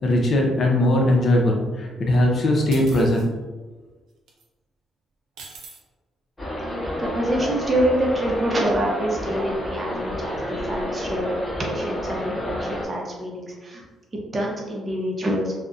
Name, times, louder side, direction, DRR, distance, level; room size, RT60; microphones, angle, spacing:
voice 1, 0.0-3.3, left 1 dB, 50° left, 0 dB, 0.5 m, -20 dB
sound 1, 2.7-3.3 4.3-4.4 5.4-5.8, right 4 dB, 85° right, 0.4 m, -41 dB
sound 2, 6.4-12.8, equal, 15° left, 0.8 m, -30 dB
voice 2, 7.0-13.8 14.3-15.5, right 1 dB, 30° right, -2 dB, 0.6 m, -26 dB
2.5 x 2.1 x 2.4 m, 1.3 s
cardioid pair, 90°, 0 cm